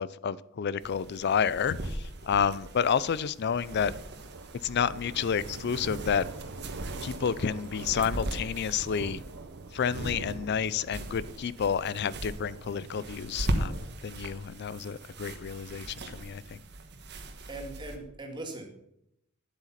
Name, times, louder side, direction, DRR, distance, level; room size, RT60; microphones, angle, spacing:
voice 1, 0.0-4.0 4.6-6.3 7.0-9.2 9.7-16.6, left 7 dB, 55° left, 19 dB, 0.4 m, -30 dB
sound 1, 0.8-18.0, right 1 dB, 55° right, 1.3 m, -39 dB
Thunder, 1.0-17.9, right 3 dB, 75° right, 0.9 m, -45 dB
voice 2, 17.5-18.7, right 2 dB, 25° right, 2 dB, 1.9 m, -40 dB
9.9 x 8.0 x 5.8 m, 0.79 s
head